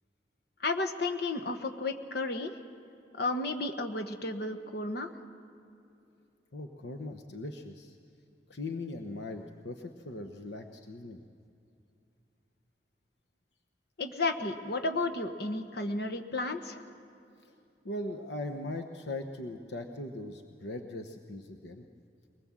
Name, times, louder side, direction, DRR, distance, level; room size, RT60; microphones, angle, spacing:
voice 1, 0.6-2.6 3.1-5.1 14.0-16.8, left 2 dB, 65° left, 7 dB, 1.3 m, -33 dB
voice 2, 6.5-8.0 8.5-11.2 17.4-17.5 17.8-21.9, left 2 dB, 80° left, 5 dB, 1.0 m, -40 dB
23.0 x 20.0 x 7.5 m, 2.6 s
head